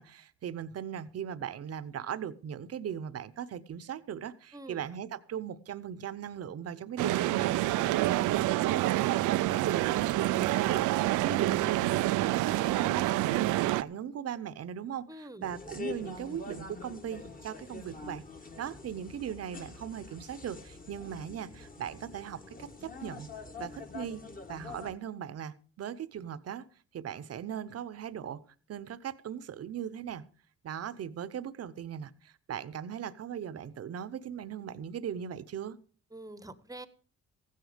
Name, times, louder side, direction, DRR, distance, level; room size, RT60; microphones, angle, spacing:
voice 1, 0.0-13.4 13.8-15.1 15.4-18.2 18.6-23.3 23.6-26.7 26.9-28.4 28.7-30.2 30.6-35.8, right 9 dB, 55° right, 16 dB, 0.9 m, -39 dB
voice 2, 4.5-4.9 15.1-15.5 36.1-36.9, right 1 dB, 10° right, 14 dB, 1.0 m, -45 dB
sound 1, 7.0-13.8, right 16 dB, 85° right, 0.5 m, -27 dB
sound 2, 15.4-24.9, left 3 dB, 30° left, 1.5 m, -45 dB
15.0 x 9.5 x 5.1 m, 0.41 s
cardioid pair, 90°, 30 cm